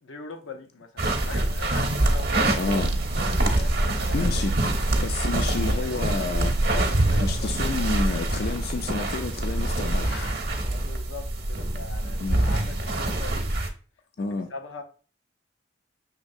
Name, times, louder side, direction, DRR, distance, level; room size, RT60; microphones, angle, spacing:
voice 1, 0.0-2.6 3.1-4.6 4.9-5.0 5.5-6.4 6.7-8.1 10.6-13.5 14.5-14.8, left 4 dB, 90° left, 0.7 m, -41 dB
sound 1, 1.0-13.7, right 1 dB, 55° right, 0.7 m, -25 dB
sound 2, 2.1-8.5, right 2 dB, 80° right, 0.3 m, -35 dB
voice 2, 2.6-2.9 4.1-4.6 5.0-6.5 7.2-10.4 12.2-12.4 14.2-14.5, left 4 dB, 55° left, 0.3 m, -30 dB
sound 3, 3.0-10.9, right 1 dB, 10° right, 0.4 m, -40 dB
6.1 x 3.2 x 2.6 m
head